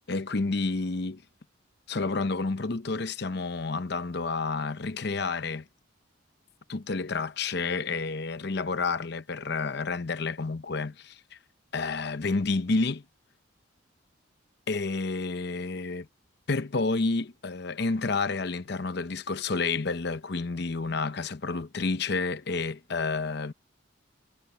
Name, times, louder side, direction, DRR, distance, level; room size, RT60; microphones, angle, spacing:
voice 1, 0.1-1.2 1.9-5.6 6.7-11.2 11.7-13.0 14.7-16.1 16.5-23.5, left 3 dB, 55° left, 0.7 m, -30 dB
head